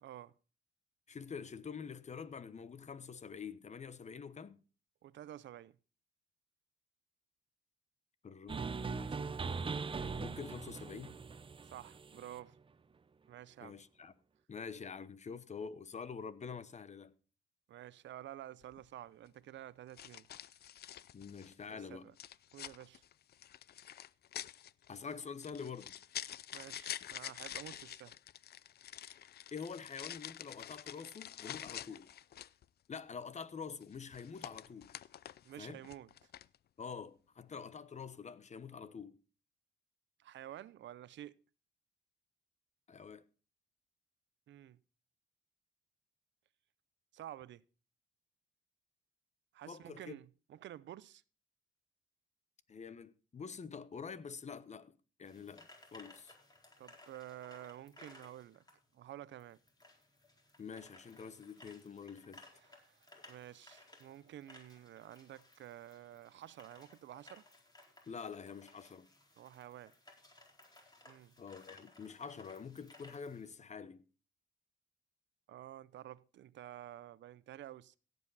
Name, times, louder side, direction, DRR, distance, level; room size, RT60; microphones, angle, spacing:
voice 1, 0.0-0.3 5.0-5.8 11.7-12.6 13.3-13.8 17.7-20.3 21.7-22.1 22.5-23.0 26.5-28.2 35.4-36.1 40.2-41.4 44.5-44.8 47.1-47.6 49.5-51.2 56.8-58.6 58.9-59.6 62.6-67.4 69.4-69.9 71.1-71.3 75.5-78.0, right 12 dB, 65° right, 0.6 m, -51 dB
voice 2, 1.1-4.6 8.2-11.1 13.6-14.1 14.5-17.1 21.1-22.1 24.9-26.0 29.0-29.2 29.5-32.1 32.9-35.0 35.6-35.8 36.8-39.2 42.9-43.2 49.7-50.2 52.7-54.9 55.2-56.3 60.6-62.4 68.1-69.1 71.4-74.0, left 6 dB, 35° left, 1.0 m, -47 dB
sound 1, 8.5-12.4, right 5 dB, 25° right, 0.7 m, -41 dB
sound 2, 18.6-18.8 20.0-21.6 22.2-32.7 33.8-35.5 35.8-36.6, left 11 dB, 55° left, 0.5 m, -47 dB
sound 3, 55.3-73.5, left 2 dB, 20° left, 4.3 m, -61 dB
16.5 x 8.0 x 4.1 m
cardioid pair, 90°, 20 cm